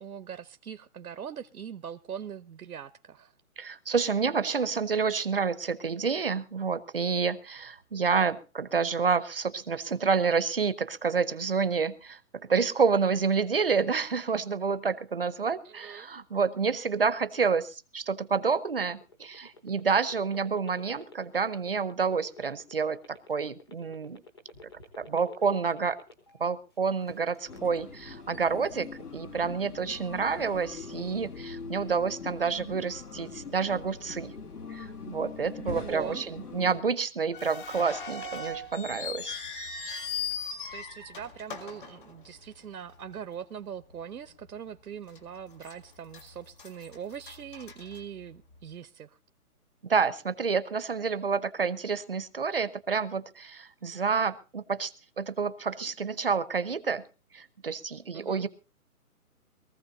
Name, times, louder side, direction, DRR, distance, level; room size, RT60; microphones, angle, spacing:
voice 1, 0.0-3.3 15.6-16.1 35.7-36.2 40.7-49.2 58.1-58.5, right 8 dB, 90° right, 10 dB, 1.0 m, -41 dB
voice 2, 3.6-24.2 25.0-26.0 26.4-28.9 29.1-34.3 34.7-39.3 49.9-57.0 57.3-58.5, right 5 dB, 40° right, 15 dB, 0.8 m, -29 dB
sound 1, 18.2-26.5 26.8-27.6, left 3 dB, 15° left, 1.0 m, -49 dB
sound 2, 27.5-36.8, left 5 dB, 85° left, 2.6 m, -42 dB
sound 3, 37.3-42.7 42.9-43.0 43.8-44.0 44.5-44.6 45.2-45.8 46.1-48.6, left 5 dB, 35° left, 1.9 m, -39 dB
22.0 x 15.0 x 2.7 m, 0.33 s
hypercardioid pair, 175°, 45 cm